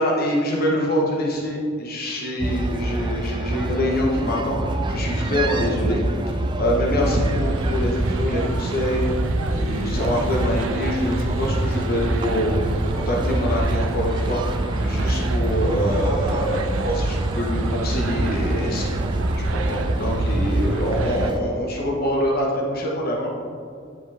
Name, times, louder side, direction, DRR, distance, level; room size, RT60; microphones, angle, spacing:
voice 1, 0.0-9.1 9.5-14.4 14.8-18.9 19.4-23.3, left 1 dB, 45° left, -2 dB, 1.0 m, -25 dB
sound 1, 2.4-21.4, right 1 dB, 20° right, 0.3 m, -25 dB
sound 2, 7.0-21.3, right 2 dB, 70° right, 0.6 m, -29 dB
9.2 x 5.1 x 3.4 m, 2.3 s
head